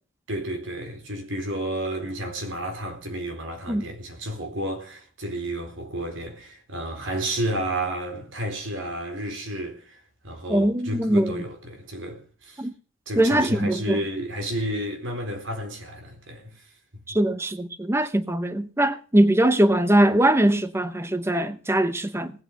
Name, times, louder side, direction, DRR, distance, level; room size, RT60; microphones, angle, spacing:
voice 1, 0.3-12.7 13.1-16.6 17.1-17.2, right 1 dB, 90° right, 4.2 m, -31 dB
voice 2, 10.5-11.4 12.6-12.7 13.2-14.0 17.1-22.3, right 1 dB, 15° right, 0.8 m, -21 dB
19.0 x 8.1 x 6.4 m
head